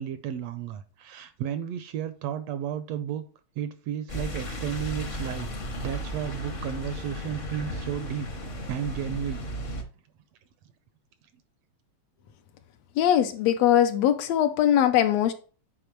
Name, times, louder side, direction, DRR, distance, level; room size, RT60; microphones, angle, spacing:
voice 1, 0.0-3.3 3.6-5.5 5.8-8.3 8.7-9.5, right 9 dB, 75° right, 1.6 m, -33 dB
sound 1, 4.1-9.8, equal, 45° left, 0.9 m, -35 dB
voice 2, 13.0-15.3, left 10 dB, 75° left, 1.7 m, -21 dB
8.7 x 4.9 x 4.6 m
omnidirectional pair, 3.3 m